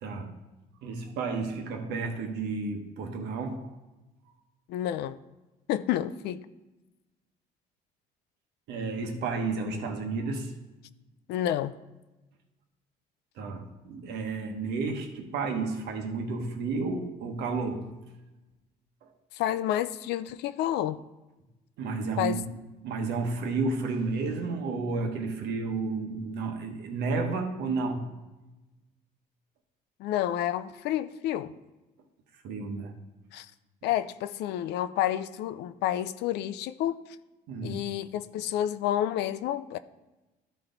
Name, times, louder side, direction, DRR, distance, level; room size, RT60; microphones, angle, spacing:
voice 1, 0.0-0.4 0.8-3.7 8.7-10.5 13.4-17.9 19.0-19.1 21.8-22.4 22.8-28.0 32.4-33.0 37.5-37.8, right 4 dB, 80° right, 1.2 m, -32 dB
voice 2, 4.7-5.2 5.7-6.4 11.3-11.7 19.3-21.0 22.2-22.4 30.0-31.5 33.3-33.5 33.8-37.0 37.6-39.8, left 12 dB, 80° left, 0.4 m, -29 dB
13.0 x 4.3 x 3.9 m
cardioid pair, 110°, 17 cm